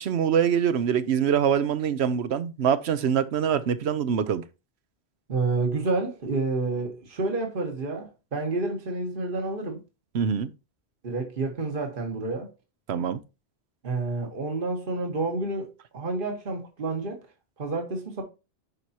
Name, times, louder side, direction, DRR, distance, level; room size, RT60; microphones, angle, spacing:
voice 1, 0.0-4.4 10.1-10.5 12.9-13.2, right 8 dB, 80° right, 1.0 m, -24 dB
voice 2, 5.3-9.8 11.0-12.5 13.8-17.2 17.6-18.2, right 3 dB, 55° right, 1.6 m, -29 dB
11.0 x 4.6 x 2.9 m
omnidirectional pair, 1.1 m